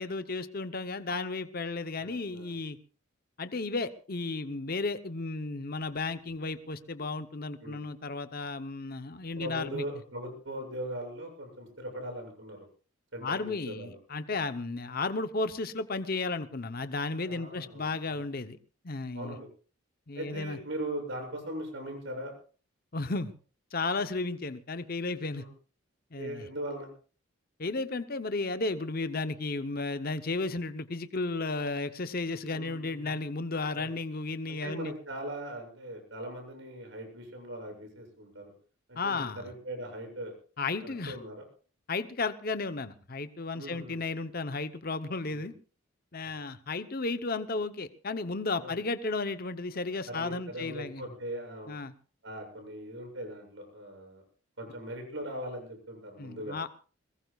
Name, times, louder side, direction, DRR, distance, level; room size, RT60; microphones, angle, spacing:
voice 1, 0.0-2.8 3.4-9.8 13.2-18.6 18.8-19.4 20.1-20.6 22.9-23.3 23.7-25.4 26.1-26.4 27.6-34.9 39.0-39.5 40.6-41.2 41.9-45.5 46.1-51.0 51.7-51.9 56.2-56.7, left 3 dB, 45° left, 0.8 m, -34 dB
voice 2, 2.0-2.5 7.6-7.8 9.4-12.7 13.1-14.0 17.2-18.3 19.1-19.5 20.1-22.3 25.3-25.5 26.1-26.9 32.5-33.1 33.7-33.9 34.5-38.5 38.9-40.3 40.8-41.4 43.5-44.0 45.3-45.5 48.6-48.8 50.1-51.8 52.2-54.2 54.6-56.6, right 1 dB, 65° right, 7.5 m, -40 dB
23.0 x 21.0 x 2.4 m
head